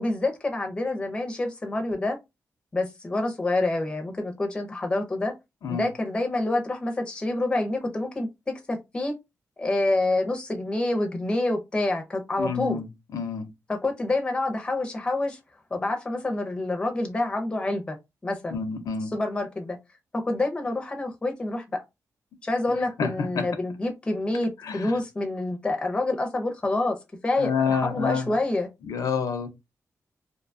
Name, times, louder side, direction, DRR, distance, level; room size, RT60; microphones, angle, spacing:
voice 1, 0.0-2.2 2.7-5.3 5.7-8.3 8.7-9.1 9.6-12.8 13.7-15.4 15.7-18.0 18.2-18.6 19.1-19.8 20.1-21.8 22.4-27.0 27.2-28.7, left 2 dB, 15° left, 0.5 m, -27 dB
voice 2, 12.4-12.9 13.1-13.5 18.5-19.1 23.0-23.5 24.6-24.9 27.4-28.3 28.8-29.5, left 6 dB, 90° left, 0.6 m, -28 dB
2.6 x 2.2 x 2.5 m
wide cardioid pair, 175°, 6 cm